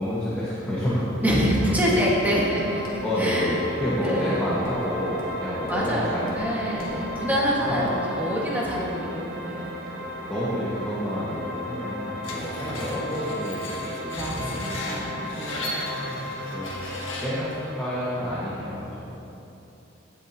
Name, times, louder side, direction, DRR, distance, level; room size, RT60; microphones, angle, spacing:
voice 1, 0.0-1.3 1.6-2.0 3.0-6.3 6.9-7.4 7.6-8.0 8.7-8.9 9.9-14.8 15.5-16.8 17.2-19.0, equal, 5° left, -11 dB, 1.6 m, -29 dB
voice 2, 1.2-3.5 4.0-4.4 5.7-9.7 14.2-15.9, equal, 10° right, -6 dB, 1.7 m, -26 dB
sound 1, 1.3-18.3, left 1 dB, 60° right, 1.6 m, -36 dB
Walk footsteps, 2.8-3.1 3.4-3.7 3.9-4.3 4.5-5.4 5.6-5.9 6.2-6.5 6.8-7.0 7.2-7.5 7.8-8.0, equal, 50° left, 1.7 m, -41 dB
Screech, 12.2-17.5, left 2 dB, 90° left, 1.6 m, -36 dB
17.0 x 7.4 x 2.9 m, 2.9 s
head